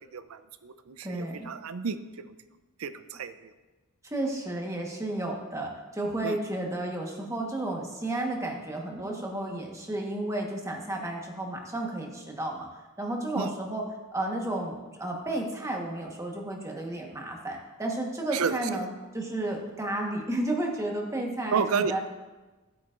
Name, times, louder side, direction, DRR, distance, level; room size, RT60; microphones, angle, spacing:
voice 1, 0.0-2.4 2.8-3.5 6.2-6.4 13.4-13.5 18.3-18.9 21.5-21.9, right 5 dB, 75° right, 12 dB, 0.5 m, -31 dB
voice 2, 1.0-1.5 4.0-12.7 13.0-13.8 14.1-14.7 15.0-18.9 19.1-22.0, right 1 dB, 15° right, 0 dB, 1.3 m, -32 dB
14.5 x 8.2 x 2.5 m, 1.2 s
head